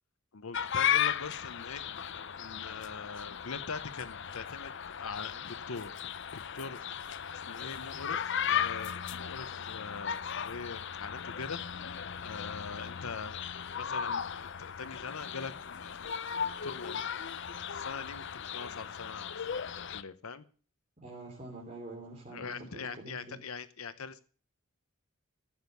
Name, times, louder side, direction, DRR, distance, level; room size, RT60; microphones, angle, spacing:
voice 1, 0.3-1.8 2.4-5.9 6.5-7.0 7.3-11.6 12.2-13.4 13.8-17.0 17.7-18.2 18.5-19.5 19.9-20.4 22.3-24.2, left 5 dB, 75° left, 12 dB, 0.9 m, -42 dB
sound 1, 0.5-20.0, left 8 dB, 55° left, 0.6 m, -36 dB
voice 2, 21.0-23.4, right 2 dB, 30° right, -1 dB, 3.2 m, -46 dB
15.5 x 7.3 x 8.1 m, 0.41 s
head